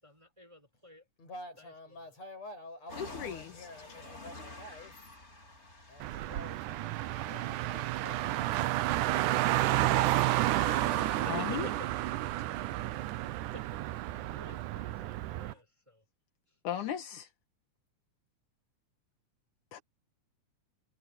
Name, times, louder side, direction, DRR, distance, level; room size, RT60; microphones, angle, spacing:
voice 1, 0.0-1.1 1.6-2.1 3.3-3.5 7.1-9.1 11.2-11.9 13.5-13.9 14.1-16.0 16.5-16.6, left 2 dB, 10° right, 5.4 m, -52 dB
voice 2, 1.2-5.0 5.9-8.5 9.7-11.3 12.5-13.0, left 2 dB, 60° left, 8.8 m, -49 dB
sound 1, 2.9-15.6, left 2 dB, 20° left, 3.9 m, -51 dB
voice 3, 3.0-3.7 11.3-11.7 16.6-17.3 19.7-19.8, left 9 dB, 80° left, 3.0 m, -37 dB
Car, 6.0-15.5, right 16 dB, 85° right, 2.3 m, -31 dB
omnidirectional pair, 3.5 m